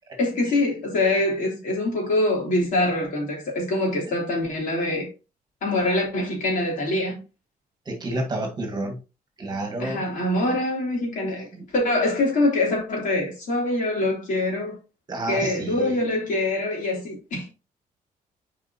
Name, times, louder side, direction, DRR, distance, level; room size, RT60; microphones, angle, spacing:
voice 1, 0.2-5.1 5.6-7.2 9.8-11.5 11.7-14.8 15.3-17.5, left 2 dB, 60° left, 3.1 m, -24 dB
voice 2, 7.9-9.0 9.4-10.1 11.5-11.6 15.1-16.0, right 1 dB, 30° right, 1.8 m, -30 dB
7.7 x 4.9 x 2.8 m
cardioid pair, 150°, 15 cm